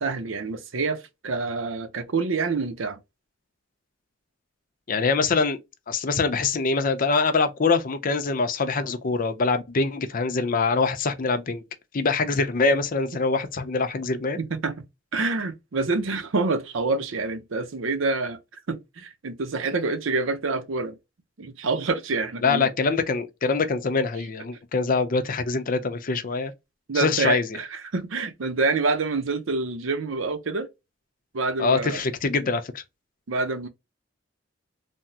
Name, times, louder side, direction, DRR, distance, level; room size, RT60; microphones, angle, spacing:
voice 1, 0.0-3.0 14.4-14.8 15.1-18.4 18.7-21.0 21.4-22.7 26.9-30.7 31.3-32.0 33.3-33.7, right 3 dB, 90° right, 0.6 m, -27 dB
voice 2, 4.9-5.6 5.9-11.6 11.9-14.4 22.4-26.5 26.9-27.6 31.6-32.8, left 4 dB, 45° left, 0.5 m, -24 dB
3.4 x 2.0 x 2.7 m
head